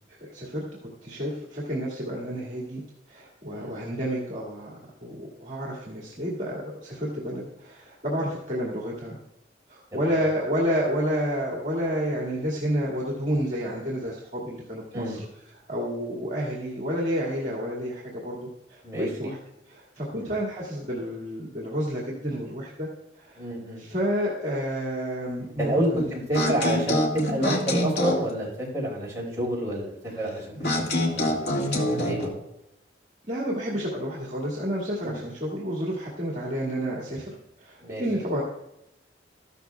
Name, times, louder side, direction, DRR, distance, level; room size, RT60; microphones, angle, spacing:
voice 1, 0.1-0.6 1.0-2.8 3.1-4.7 5.0-9.2 9.7-15.2 15.7-18.4 18.7-19.4 19.7-22.9 23.2-23.5 23.8-26.0 26.4-26.5 30.1-30.2 31.5-31.9 33.3-38.4, equal, 40° right, -4 dB, 2.1 m, -30 dB
voice 2, 9.9-10.2 14.9-15.2 18.8-19.1 20.1-20.2 23.4-23.8 25.6-31.4 31.9-32.3 35.0-35.2 37.8-38.0, right 1 dB, 20° right, -4 dB, 4.8 m, -29 dB
sound 1, 26.3-28.3 30.6-32.3, left 1 dB, 65° left, 2.0 m, -25 dB
14.5 x 12.5 x 2.3 m, 0.86 s
head